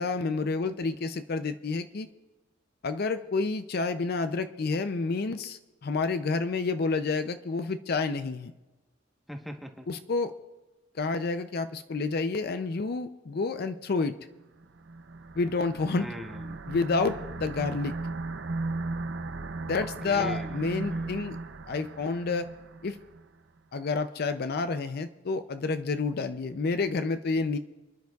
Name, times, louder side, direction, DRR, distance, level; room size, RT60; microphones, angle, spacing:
voice 1, 0.0-2.1 2.8-8.5 9.9-10.3 10.9-14.1 15.4-16.1 16.7-17.9 19.7-21.4 21.7-22.5 22.8-23.0 23.7-27.6, left 4 dB, 50° left, 10 dB, 0.5 m, -29 dB
voice 2, 9.3-9.9 16.0-16.5 20.1-21.1, equal, ahead, 2 dB, 1.1 m, -41 dB
sound 1, 14.6-23.3, right 3 dB, 65° right, 0.6 m, -36 dB
27.5 x 10.5 x 2.3 m, 1.1 s
head